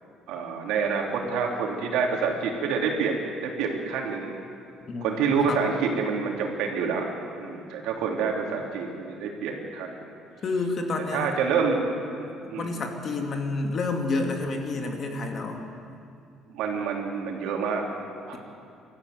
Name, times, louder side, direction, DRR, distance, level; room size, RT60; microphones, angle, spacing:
voice 1, 0.3-4.3 5.0-7.1 7.4-10.0 11.1-11.9 12.1-12.7 16.5-17.9 18.3-18.4, right 5 dB, 85° right, 1 dB, 3.4 m, -27 dB
voice 2, 4.9-5.7 10.4-11.3 12.6-15.6, left 3 dB, 35° left, 3 dB, 2.5 m, -29 dB
23.0 x 14.0 x 9.5 m, 2.5 s
cardioid pair, 150°, 0 cm